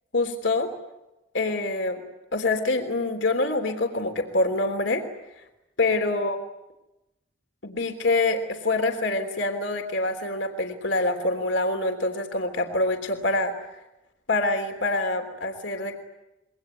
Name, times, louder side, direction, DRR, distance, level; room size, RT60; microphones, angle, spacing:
voice 1, 0.1-0.7 1.3-2.0 2.3-5.0 5.4-5.5 5.8-6.4 7.6-13.5 14.3-15.9, left 2 dB, 70° left, 5 dB, 3.4 m, -25 dB
26.5 x 23.0 x 9.3 m, 0.95 s
head